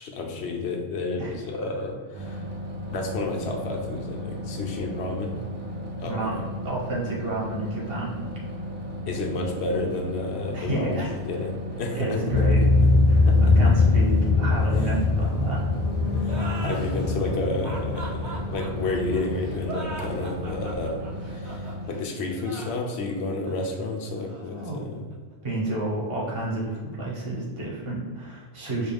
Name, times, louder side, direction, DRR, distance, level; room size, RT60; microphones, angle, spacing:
voice 1, 0.0-2.5 2.9-5.4 6.0-6.4 9.1-12.4 13.3-13.7 16.1-25.1, left 2 dB, 75° left, 2 dB, 0.9 m, -31 dB
sound 1, 2.1-21.9, equal, 35° right, 0.4 m, -35 dB
voice 2, 6.1-8.2 10.5-11.1 11.9-12.6 13.1-15.6 16.0-16.7 24.5-24.8 25.4-28.9, right 2 dB, 60° right, -4 dB, 1.2 m, -31 dB
sound 2, 12.3-20.8, left 3 dB, 40° left, 0.6 m, -22 dB
sound 3, 16.2-25.5, right 1 dB, 85° right, 1.3 m, -40 dB
4.8 x 2.3 x 3.4 m, 1.5 s
omnidirectional pair, 1.1 m